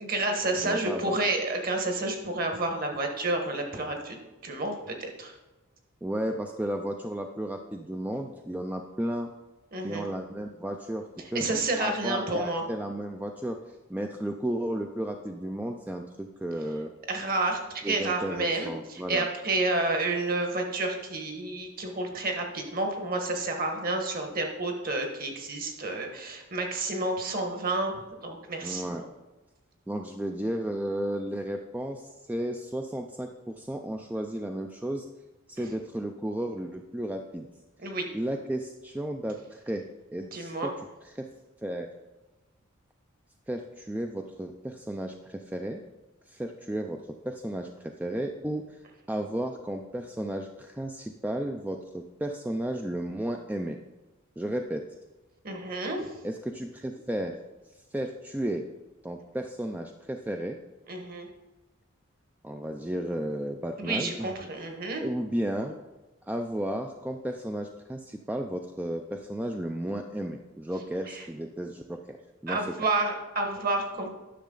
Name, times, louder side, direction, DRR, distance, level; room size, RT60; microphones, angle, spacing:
voice 1, 0.0-4.2 4.4-5.3 9.7-10.1 11.3-12.6 17.1-17.6 17.9-29.0 37.8-38.1 40.3-40.7 55.4-56.1 60.9-61.3 63.8-65.0 71.1-71.2 72.5-74.1, right 2 dB, 45° right, 3 dB, 1.3 m, -30 dB
voice 2, 0.6-1.1 6.0-9.3 9.8-11.5 11.8-16.9 17.8-19.3 28.6-29.0 29.9-35.1 35.5-37.5 38.1-39.9 40.1-40.7 41.0-41.3 41.6-41.9 43.5-45.8 46.3-48.8 49.1-53.8 54.4-54.8 56.2-57.4 57.9-58.6 59.0-60.6 62.4-64.3 65.0-65.8 66.3-72.2 72.4-72.6, right 1 dB, 10° right, 4 dB, 0.3 m, -33 dB
10.0 x 6.5 x 3.9 m, 1.1 s
head